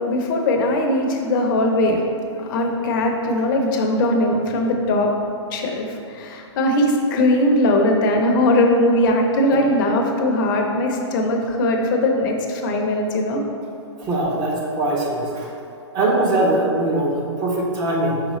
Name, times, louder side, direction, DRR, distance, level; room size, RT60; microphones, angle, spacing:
voice 1, 0.1-2.0 2.4-5.1 5.5-5.8 6.1-13.4, left 1 dB, 45° left, 2 dB, 0.6 m, -20 dB
voice 2, 14.0-15.5 15.9-18.2, right 2 dB, 25° right, -2 dB, 0.8 m, -21 dB
4.9 x 3.5 x 3.1 m, 2.6 s
hypercardioid pair, 135°, 15 cm